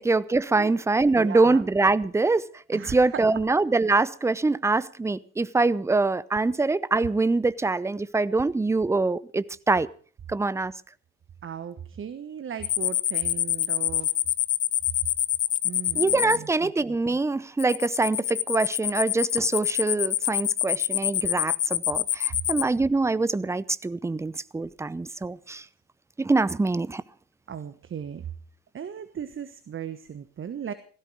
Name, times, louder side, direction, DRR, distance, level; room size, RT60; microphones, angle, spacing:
voice 1, 0.0-9.9 10.3-10.7 16.0-25.6 26.2-27.0, right 3 dB, 5° right, 0.7 m, -24 dB
voice 2, 1.1-1.6 2.7-3.2 11.4-14.1 15.6-16.7 22.3-22.4 27.5-28.2 28.7-30.7, right 8 dB, 30° right, 1.3 m, -37 dB
sound 1, 12.6-16.4 17.6-22.6, left 13 dB, 40° left, 1.1 m, -25 dB
18.0 x 16.0 x 4.7 m
hypercardioid pair, 65°, 43 cm